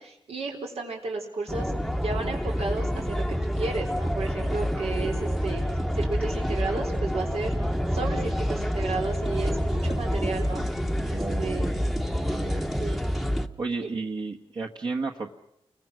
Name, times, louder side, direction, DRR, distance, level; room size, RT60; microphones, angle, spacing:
voice 1, 0.0-1.7 2.0-3.2 3.6-5.6 6.0-7.5 7.9-10.7 11.0-11.6 12.8-13.0 13.8-13.9, right 3 dB, 90° right, 1 dB, 4.3 m, -33 dB
sound 1, 1.5-13.5, equal, ahead, 0.9 m, -28 dB
voice 2, 11.1-11.8 12.2-12.7 13.6-15.3, right 4 dB, 45° right, 1 dB, 1.2 m, -33 dB
29.5 x 22.0 x 6.2 m, 0.74 s
wide cardioid pair, 180°, 10 cm